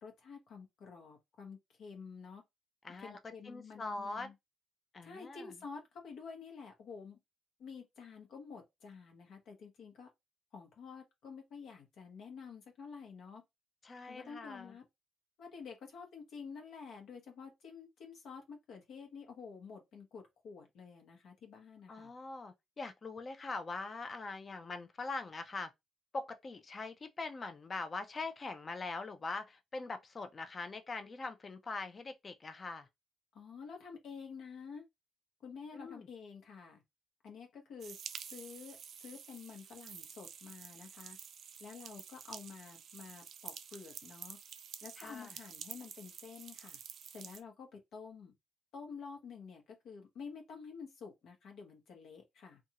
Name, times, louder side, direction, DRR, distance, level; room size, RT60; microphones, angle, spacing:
voice 1, 0.0-2.4 3.0-4.3 5.0-7.2 7.6-10.1 10.5-13.4 14.1-14.8 15.4-22.1 33.3-34.8 35.4-36.8 37.2-38.0 38.3-41.2 41.6-44.4 44.8-46.8 47.1-48.3 48.7-52.6, left 5 dB, 75° left, 1.0 m, -50 dB
voice 2, 2.8-3.2 3.4-4.3 4.9-5.5 13.8-14.8 21.9-25.7 26.1-32.9 35.7-36.1 45.0-45.3, left 3 dB, 35° left, 0.5 m, -42 dB
sound 1, 37.8-47.4, right 8 dB, 65° right, 0.3 m, -49 dB
2.6 x 2.3 x 2.8 m
cardioid pair, 90°, 0 cm